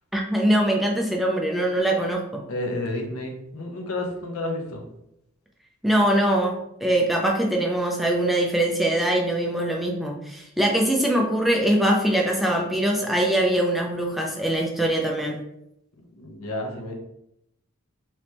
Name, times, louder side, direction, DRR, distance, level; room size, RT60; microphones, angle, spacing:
voice 1, 0.1-2.4 5.8-15.4, right 1 dB, ahead, -1 dB, 0.4 m, -22 dB
voice 2, 2.5-4.8 16.2-16.9, left 1 dB, 90° left, 2 dB, 0.8 m, -30 dB
3.3 x 3.0 x 2.9 m, 0.81 s
head